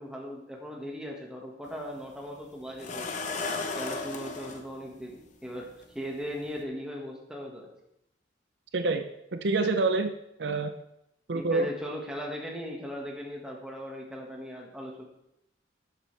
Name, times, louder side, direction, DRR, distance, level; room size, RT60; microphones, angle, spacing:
voice 1, 0.0-3.1 3.7-5.7 5.9-7.7 11.3-15.0, equal, 5° right, -2 dB, 1.7 m, -38 dB
sound 1, 1.7-1.8 2.8-4.6 5.8-5.9 6.4-6.6, left 3 dB, 40° left, 0.9 m, -34 dB
voice 2, 8.7-10.1 10.4-10.7 11.3-11.7, right 3 dB, 65° right, 8 dB, 0.6 m, -27 dB
11.5 x 7.5 x 3.4 m, 0.82 s
head